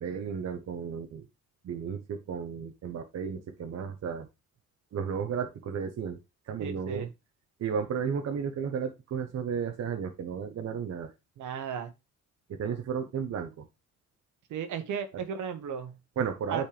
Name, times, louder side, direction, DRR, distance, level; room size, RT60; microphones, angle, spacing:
voice 1, 0.0-1.3 1.6-4.3 4.9-6.2 6.5-7.1 7.6-11.1 12.5-13.6 16.2-16.7, right 7 dB, 60° right, 1.0 m, -33 dB
voice 2, 6.6-7.1 11.4-11.9 14.5-16.0 16.5-16.6, right 7 dB, 75° right, 1.3 m, -35 dB
8.7 x 4.4 x 3.4 m
cardioid pair, 90°, 30 cm